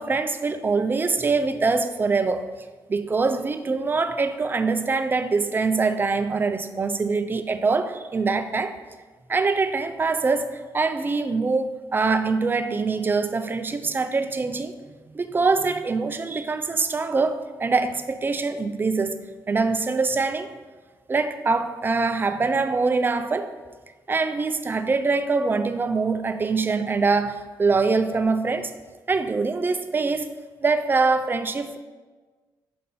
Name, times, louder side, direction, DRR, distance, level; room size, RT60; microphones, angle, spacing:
voice 1, 0.0-2.5 2.9-8.8 9.3-14.7 15.1-19.2 19.5-20.5 21.1-23.5 24.1-28.7 29.1-30.3 30.6-31.8, right 4 dB, 25° right, 9 dB, 0.4 m, -24 dB
6.6 x 3.8 x 4.1 m, 1.3 s
cardioid pair, 95°, 8 cm